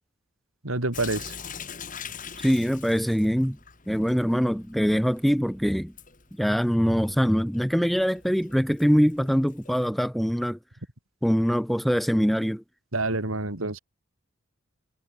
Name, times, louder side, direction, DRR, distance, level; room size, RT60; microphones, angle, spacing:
voice 1, 0.6-1.4 12.9-13.8, right 2 dB, 80° right, 2.8 m, -27 dB
Sink (filling or washing) / Drip, 0.9-9.8, left 7 dB, 40° left, 6.9 m, -44 dB
voice 2, 2.4-3.6 3.9-5.9 6.4-10.6 11.2-12.6, equal, ahead, 0.8 m, -23 dB
head